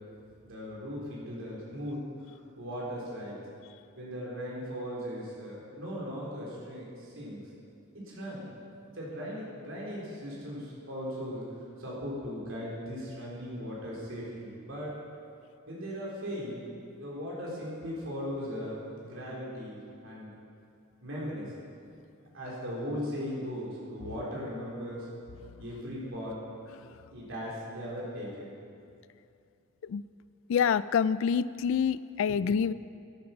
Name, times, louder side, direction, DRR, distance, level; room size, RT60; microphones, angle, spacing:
voice 1, 0.4-2.0 2.6-3.4 4.0-7.4 7.9-8.5 8.9-11.4 11.8-14.9 15.7-16.6 17.0-20.3 21.0-21.5 22.3-25.1 25.6-26.4 27.1-28.5, equal, 65° right, -5 dB, 4.0 m, -38 dB
voice 2, 30.5-32.7, left 7 dB, 65° left, 17 dB, 0.3 m, -26 dB
12.5 x 10.5 x 6.0 m, 2.5 s
head